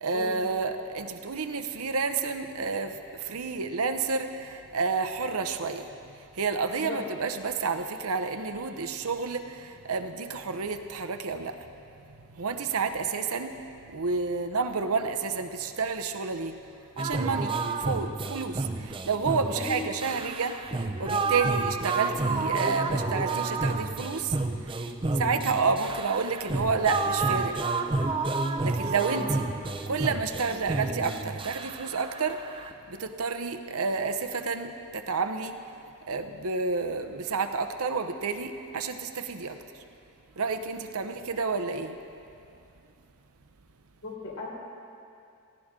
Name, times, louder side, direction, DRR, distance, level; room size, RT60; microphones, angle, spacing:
voice 1, 0.0-5.9 6.2-11.6 12.3-13.6 13.9-16.6 17.0-24.4 24.6-24.8 25.1-27.6 28.6-29.5 29.9-32.4 32.9-35.6 36.1-39.6 40.4-42.0, right 4 dB, 80° right, 7 dB, 0.8 m, -30 dB
sound 1, 17.0-32.7, right 3 dB, 25° right, 0.5 m, -30 dB
voice 2, 44.0-44.5, left 3 dB, 80° left, -5 dB, 4.4 m, -36 dB
18.0 x 15.5 x 3.8 m, 2.5 s
head